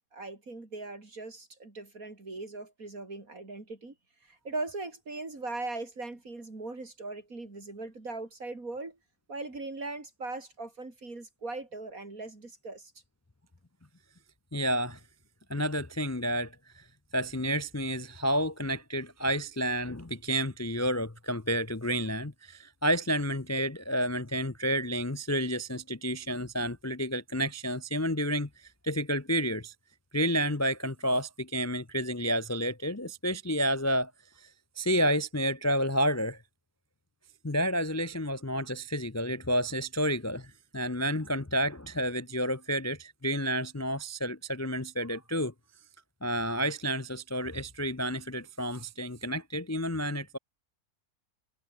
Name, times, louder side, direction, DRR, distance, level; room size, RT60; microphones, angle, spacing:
voice 1, 0.1-3.9 4.3-9.0 9.3-12.9, right 3 dB, 60° right, 4.9 m, -39 dB
voice 2, 14.5-15.0 15.5-16.8 17.1-29.7 30.1-34.1 34.4-34.5 34.8-36.4 37.4-45.5 46.2-50.4, equal, 15° left, 0.7 m, -30 dB
omnidirectional pair, 1.6 m